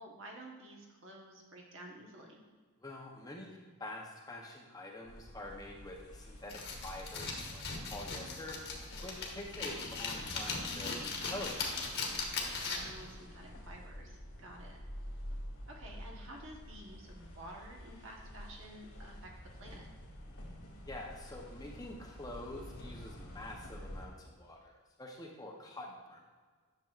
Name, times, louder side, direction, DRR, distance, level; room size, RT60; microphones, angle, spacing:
voice 1, 0.0-2.4 12.6-14.8 15.7-19.3 19.6-19.9, right 1 dB, 60° right, 0 dB, 1.2 m, -51 dB
voice 2, 2.8-8.6 9.0-11.7 15.3-15.4 20.9-26.2, left 1 dB, 15° left, -1 dB, 0.7 m, -46 dB
sound 1, 5.1-24.1, equal, 90° left, 1.8 m, -49 dB
sound 2, 6.5-13.0, left 4 dB, 50° left, 1.3 m, -39 dB
10.5 x 6.8 x 2.4 m, 1.5 s
head